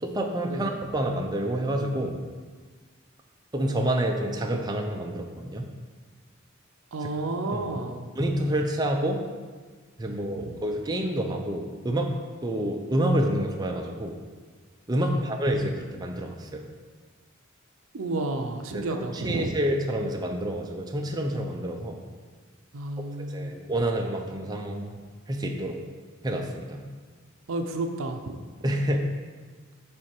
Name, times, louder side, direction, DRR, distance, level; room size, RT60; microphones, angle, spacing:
voice 1, 0.0-2.2 3.5-5.7 7.0-7.1 7.5-7.7 8.2-9.2 10.0-12.1 12.4-14.1 14.9-16.7 18.7-22.0 23.3-24.9 25.3-25.8 26.2-26.8 28.6-29.1, right 1 dB, 20° right, 2 dB, 0.5 m, -28 dB
voice 2, 6.9-8.3 10.1-10.2 10.5-10.6 15.0-15.2 15.7-15.8 17.9-19.6 22.7-23.5 27.5-28.2, right 2 dB, 70° right, 5 dB, 0.5 m, -31 dB
7.7 x 3.8 x 4.4 m, 1.5 s
head